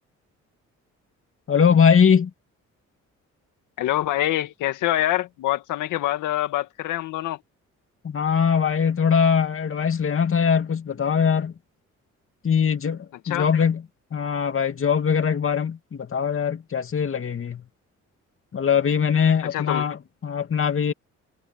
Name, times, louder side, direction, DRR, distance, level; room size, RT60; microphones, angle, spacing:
voice 1, 1.5-2.3 8.0-11.5 12.4-13.8 14.1-17.6 18.5-20.9, left 7 dB, 45° left, 2.7 m, -21 dB
voice 2, 3.8-7.4 13.3-13.5 19.5-19.9, left 14 dB, 90° left, 2.0 m, -25 dB
cardioid pair, 90°, 30 cm